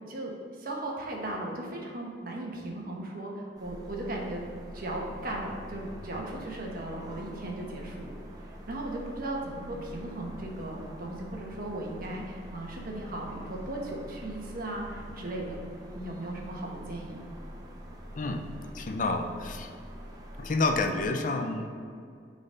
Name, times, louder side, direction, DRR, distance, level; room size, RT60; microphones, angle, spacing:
voice 1, 0.1-4.4 4.7-8.2 8.4-15.6 15.9-17.3, right 1 dB, 55° right, -1 dB, 1.2 m, -37 dB
sound 1, 3.6-21.1, equal, 20° right, 0.8 m, -45 dB
voice 2, 18.7-19.7 20.4-21.7, left 3 dB, 45° left, 5 dB, 0.5 m, -29 dB
8.9 x 3.9 x 3.9 m, 2.3 s
head